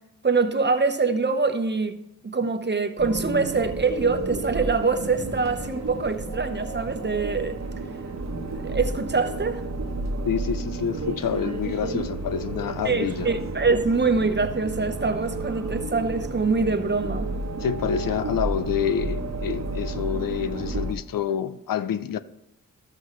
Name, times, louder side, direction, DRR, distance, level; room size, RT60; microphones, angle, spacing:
voice 1, 0.2-2.0 2.2-7.6 8.5-9.6 12.8-17.3, right 4 dB, 30° right, 0.9 m, -24 dB
sound 1, 3.0-20.9, right 2 dB, 55° right, 1.1 m, -31 dB
voice 2, 10.3-13.3 17.6-22.2, left 8 dB, 85° left, 0.5 m, -27 dB
12.5 x 7.6 x 3.1 m
cardioid pair, 60°, 33 cm